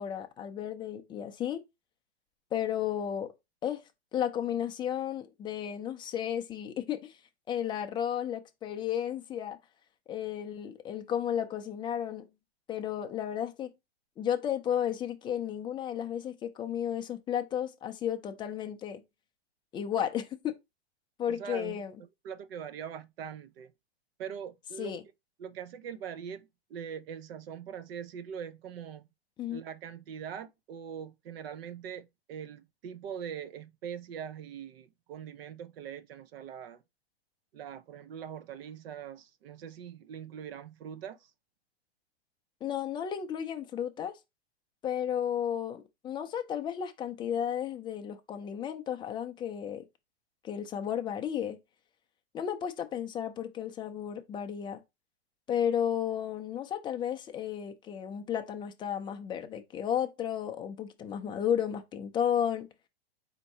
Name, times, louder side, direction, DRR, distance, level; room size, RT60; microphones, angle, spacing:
voice 1, 0.0-1.6 2.5-3.3 3.6-3.8 4.1-7.2 7.5-9.6 10.1-12.3 12.7-13.7 14.2-19.0 19.7-20.5 21.2-21.9 24.8-25.0 29.4-29.6 42.6-44.2 44.8-49.8 50.4-51.6 52.3-54.8 55.5-62.7, left 9 dB, 15° left, 0.4 m, -33 dB
voice 2, 21.3-21.8 22.2-23.7 24.2-24.9 25.4-29.1 29.5-36.8 37.5-41.3, right 8 dB, 65° right, 0.7 m, -42 dB
4.4 x 2.7 x 4.1 m
hypercardioid pair, 125°, 32 cm